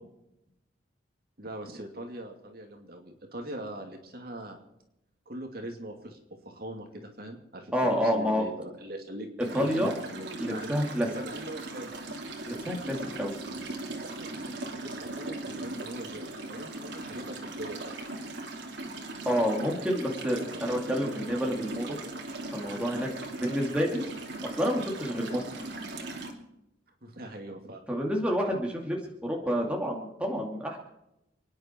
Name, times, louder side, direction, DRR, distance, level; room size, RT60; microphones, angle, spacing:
voice 1, 1.4-4.6 5.3-6.2 6.4-9.3 9.6-10.7 11.1-11.9 14.0-18.0 27.0-27.8, right 1 dB, 50° right, 3 dB, 2.5 m, -41 dB
voice 2, 7.7-8.5 9.4-10.0 10.4-11.1 12.5-13.3 19.2-22.0 22.5-23.1 23.4-24.0 24.4-25.7 27.9-30.8, equal, 5° right, -1 dB, 2.5 m, -29 dB
sound 1, 9.4-26.3, right 2 dB, 70° right, 2.9 m, -39 dB
29.0 x 10.0 x 4.5 m, 0.87 s
head